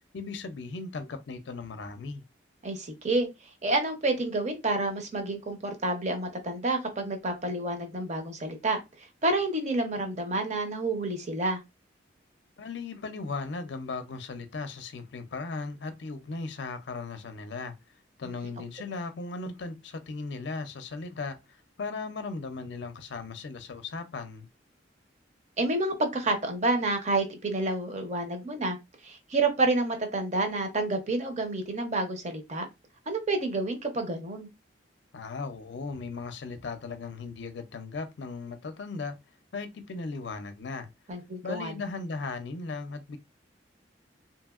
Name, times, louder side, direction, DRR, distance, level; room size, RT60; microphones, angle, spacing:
voice 1, 0.1-2.2 12.6-17.7 18.2-24.5 35.1-39.2 39.5-40.9 41.4-43.2, left 4 dB, 65° left, 0.5 m, -37 dB
voice 2, 2.6-3.3 3.6-11.6 25.6-28.8 29.0-32.7 33.1-34.5 41.1-41.7, right 2 dB, 40° right, 0.6 m, -29 dB
2.8 x 2.7 x 2.3 m
head